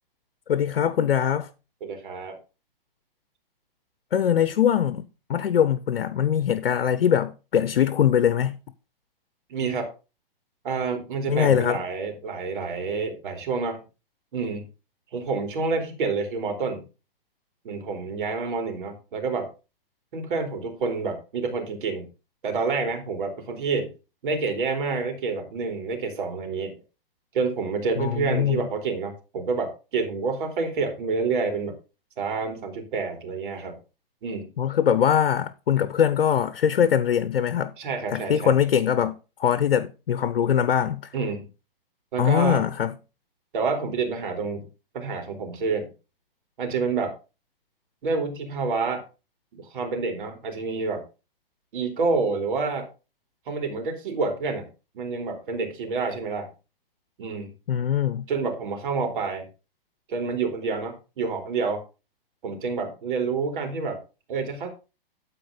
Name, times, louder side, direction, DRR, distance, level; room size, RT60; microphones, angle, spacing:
voice 1, 0.5-1.5 4.1-8.6 11.3-11.8 28.0-28.7 34.6-37.7 38.1-41.1 42.2-42.9 57.7-58.3, left 9 dB, 85° left, 0.9 m, -22 dB
voice 2, 1.8-2.4 9.5-9.9 10.6-13.8 14.3-14.6 15.1-16.8 17.6-19.5 20.1-22.0 22.4-23.9 24.2-26.7 27.3-31.7 32.2-33.8 34.2-34.5 37.8-38.5 41.1-41.5 42.1-42.6 43.5-44.7 44.9-45.9 46.6-47.1 48.0-49.0 49.5-51.0 51.7-52.9 53.5-54.7 54.9-56.5 57.2-57.5 58.3-59.5 60.1-61.8 62.4-64.0 64.3-64.7, right 4 dB, 60° right, 3.2 m, -28 dB
12.5 x 4.6 x 5.0 m
hypercardioid pair, 150°, 29 cm